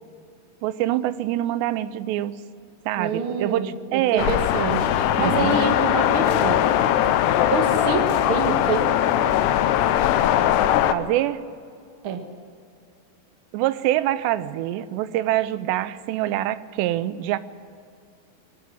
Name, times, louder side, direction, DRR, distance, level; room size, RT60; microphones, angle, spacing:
voice 1, 0.6-2.4 2.9-4.4 5.2-5.7 10.9-11.4 13.5-17.4, right 14 dB, 85° right, 15 dB, 2.9 m, -25 dB
voice 2, 3.0-6.7 7.5-8.9 12.0-12.2, right 4 dB, 55° right, 5 dB, 1.4 m, -26 dB
sound 1, 4.2-10.9, left 11 dB, 80° left, 2.8 m, -20 dB
24.0 x 14.0 x 9.9 m, 2.3 s
omnidirectional pair, 4.9 m